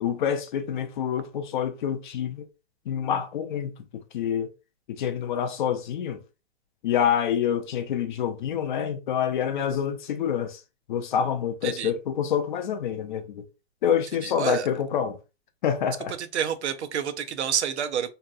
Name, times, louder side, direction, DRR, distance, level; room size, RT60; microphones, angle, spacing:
voice 1, 0.0-2.4 2.9-3.7 4.1-4.5 4.9-6.2 6.8-10.6 10.9-13.5 13.8-15.2 15.6-16.1, left 8 dB, 50° left, 0.5 m, -27 dB
voice 2, 14.2-14.7 16.1-18.1, right 8 dB, 90° right, 0.6 m, -29 dB
2.8 x 2.1 x 2.4 m
hypercardioid pair, 150°, 33 cm